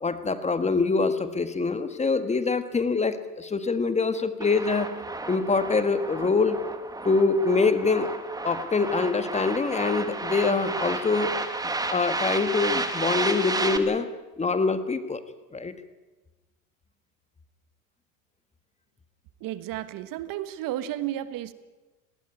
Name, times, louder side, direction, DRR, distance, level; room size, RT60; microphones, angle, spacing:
voice 1, 0.0-4.9 5.3-6.6 7.1-8.2 8.4-11.3 11.9-14.1 14.4-15.2 15.5-15.7, left 4 dB, 15° left, 1.6 m, -24 dB
sound 1, 4.4-13.8, right 2 dB, 10° right, 1.9 m, -32 dB
voice 2, 19.4-21.5, right 13 dB, 50° right, 1.4 m, -32 dB
19.5 x 17.5 x 9.8 m
supercardioid pair, 105°, 42 cm